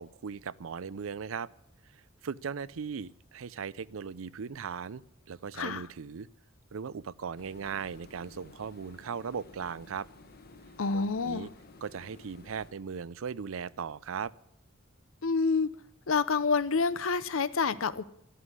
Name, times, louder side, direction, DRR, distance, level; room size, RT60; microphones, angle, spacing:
voice 1, 0.0-1.5 2.2-5.0 5.3-6.3 6.7-10.1 10.9-11.5 11.8-14.3, right 6 dB, 85° right, 0.5 m, -38 dB
voice 2, 5.5-5.8 10.8-11.5 15.2-15.7 16.1-18.0, left 4 dB, 80° left, 0.7 m, -28 dB
sound 1, 7.4-12.7, left 3 dB, 50° left, 1.1 m, -54 dB
11.5 x 11.0 x 9.8 m
head